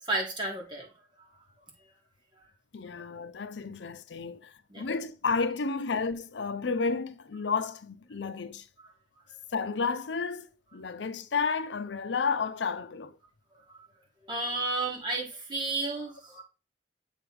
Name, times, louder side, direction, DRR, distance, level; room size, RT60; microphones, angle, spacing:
voice 1, 0.1-0.9 4.7-4.8 13.7-13.8 14.3-16.4, right 2 dB, 25° right, 2.1 m, -32 dB
voice 2, 2.7-8.7 9.5-13.2, left 5 dB, 75° left, 0.6 m, -32 dB
8.0 x 3.4 x 4.6 m
head